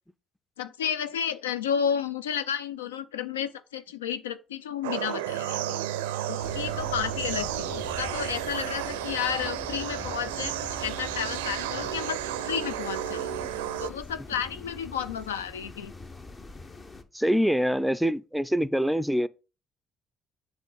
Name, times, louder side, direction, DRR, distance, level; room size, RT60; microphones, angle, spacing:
voice 1, 0.6-5.8 6.3-12.2 12.4-13.3 13.8-15.9, left 8 dB, 85° left, 0.4 m, -32 dB
sound 1, 4.8-13.9, right 11 dB, 80° right, 0.4 m, -32 dB
sound 2, 6.4-17.0, left 3 dB, 35° left, 0.9 m, -43 dB
voice 2, 17.1-19.3, equal, ahead, 0.5 m, -24 dB
7.5 x 3.1 x 5.3 m
hypercardioid pair, 50°, 0 cm